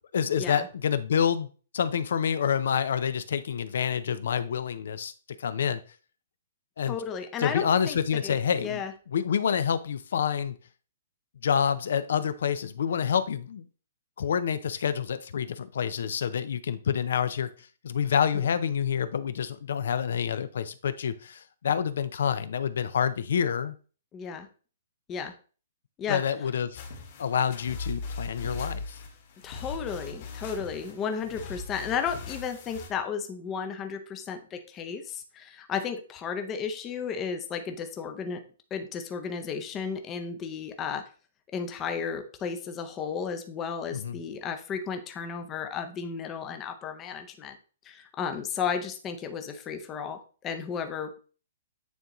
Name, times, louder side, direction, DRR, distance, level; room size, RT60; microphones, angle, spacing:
voice 1, 0.1-1.5 1.7-5.1 5.4-5.8 6.8-7.0 7.4-8.8 9.1-10.6 11.4-13.7 14.2-17.5 17.8-23.7 26.1-26.8 27.2-29.0 43.9-44.2, left 7 dB, 65° left, 13 dB, 0.5 m, -27 dB
voice 2, 6.9-8.9 18.3-18.5 24.1-24.5 25.1-25.3 26.0-26.2 29.4-38.4 38.7-41.0 41.5-47.6 47.8-51.2, left 6 dB, 15° left, 6 dB, 0.6 m, -34 dB
sound 1, 26.8-32.9, left 4 dB, 40° left, 1.6 m, -39 dB
9.2 x 3.8 x 3.0 m, 0.38 s
hypercardioid pair, 175°, 0 cm